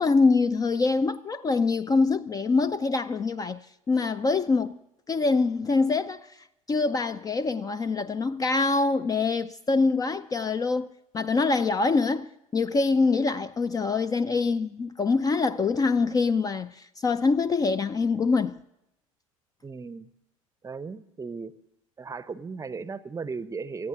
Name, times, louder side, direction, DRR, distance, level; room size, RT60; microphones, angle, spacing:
voice 1, 0.0-4.8 5.1-10.9 11.1-18.6, left 4 dB, 20° left, 0.4 m, -25 dB
voice 2, 19.6-20.1 20.6-21.5 22.0-23.9, right 4 dB, 20° right, 0.7 m, -36 dB
18.5 x 14.5 x 3.7 m
figure-of-eight pair, 70°, 17 cm